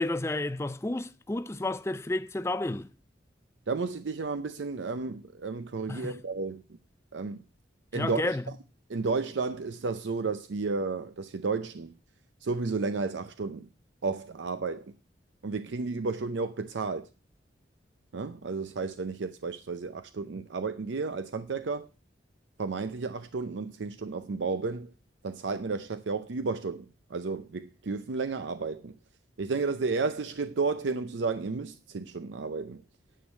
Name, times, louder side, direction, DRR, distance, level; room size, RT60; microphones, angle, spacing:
voice 1, 0.0-2.9 5.9-6.2 7.9-8.4, left 2 dB, 15° left, 0.4 m, -31 dB
voice 2, 3.7-6.6 7.1-7.4 7.9-8.4 8.9-11.9 12.4-13.7 14.0-14.9 15.4-17.1 18.1-21.9 22.6-24.9 25.2-26.8 27.1-28.9 29.4-32.8, right 4 dB, 80° right, 0.6 m, -32 dB
10.0 x 6.3 x 6.4 m
head